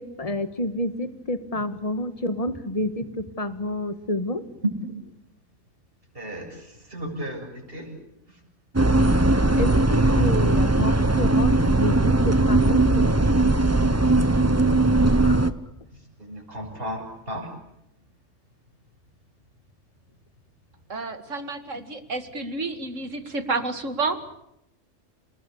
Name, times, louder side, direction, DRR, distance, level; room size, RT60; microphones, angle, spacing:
voice 1, 0.0-4.4 9.5-13.3 15.2-15.5, left 1 dB, 30° left, 11 dB, 1.8 m, -29 dB
voice 2, 6.1-7.9 8.3-8.4 14.8-15.5 15.9-17.5, equal, 50° right, 2 dB, 7.3 m, -36 dB
sound 1, 8.7-15.5, right 2 dB, 15° right, 0.9 m, -19 dB
voice 3, 20.9-24.2, right 3 dB, 80° right, 9 dB, 2.5 m, -30 dB
29.5 x 20.0 x 8.5 m, 0.83 s
omnidirectional pair, 1.3 m